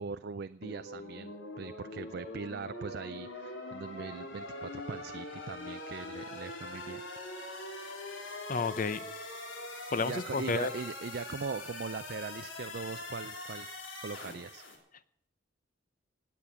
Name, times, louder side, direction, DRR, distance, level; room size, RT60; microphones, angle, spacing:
voice 1, 0.0-1.3 1.6-7.0 10.0-13.7 14.0-14.6, right 5 dB, 60° right, 10 dB, 0.5 m, -40 dB
sound 1, 0.6-14.8, left 2 dB, 90° left, 3.2 m, -43 dB
voice 2, 8.5-9.0 9.9-10.7, left 4 dB, 45° left, 14 dB, 0.7 m, -31 dB
18.5 x 8.6 x 7.3 m, 0.71 s
head